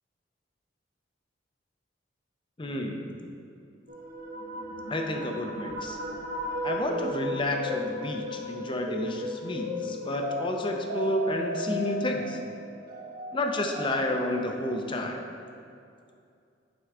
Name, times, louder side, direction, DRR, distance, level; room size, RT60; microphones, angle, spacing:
voice 1, 2.6-3.1 4.9-6.0 6.6-12.4 13.3-15.2, left 1 dB, 25° left, 3 dB, 0.6 m, -30 dB
sound 1, 3.9-14.9, left 1 dB, 50° right, 0.9 m, -35 dB
7.8 x 3.7 x 4.8 m, 2.5 s
head